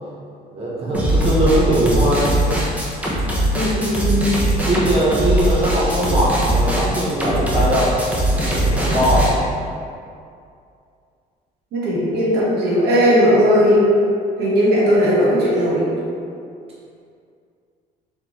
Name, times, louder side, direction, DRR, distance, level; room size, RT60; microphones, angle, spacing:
voice 1, 0.5-2.3 4.7-8.0 8.3-9.3, right 1 dB, 35° right, -7 dB, 1.0 m, -20 dB
sound 1, 0.9-9.3, right 1 dB, 10° right, 0.8 m, -20 dB
voice 2, 3.5-4.3 11.7-13.9 14.4-15.9, equal, 75° right, -7 dB, 1.2 m, -17 dB
3.8 x 3.4 x 3.1 m, 2.4 s
cardioid pair, 110°, 17 cm